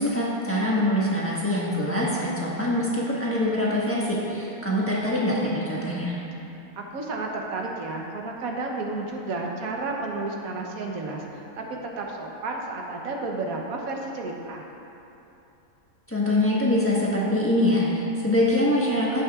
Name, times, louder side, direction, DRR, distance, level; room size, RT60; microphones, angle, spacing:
voice 1, 0.0-6.1 16.1-19.2, left 1 dB, 10° left, -7 dB, 1.2 m, -24 dB
voice 2, 6.8-14.7, right 3 dB, 80° right, 0 dB, 1.3 m, -32 dB
16.5 x 5.9 x 2.4 m, 2.9 s
omnidirectional pair, 1.5 m